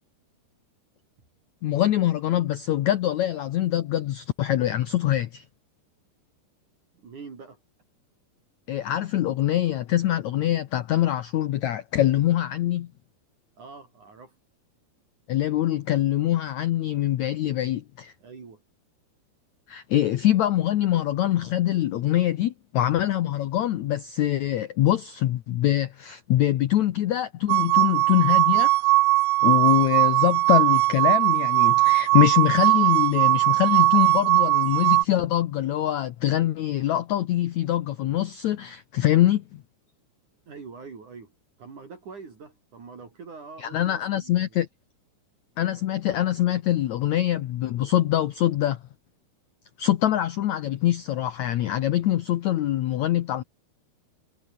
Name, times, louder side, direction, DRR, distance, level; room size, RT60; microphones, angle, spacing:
voice 1, 1.6-5.4 8.7-12.9 15.3-18.1 19.7-28.9 29.4-39.6 43.6-44.7 45.6-48.8 49.8-53.4, left 13 dB, 90° left, 1.6 m, -24 dB
voice 2, 6.9-7.6 13.6-14.4 18.2-18.6 40.5-41.3 41.6-44.5, right 5 dB, 50° right, 5.4 m, -44 dB
sound 1, 27.5-35.0, right 19 dB, 80° right, 2.2 m, -20 dB
omnidirectional pair, 4.6 m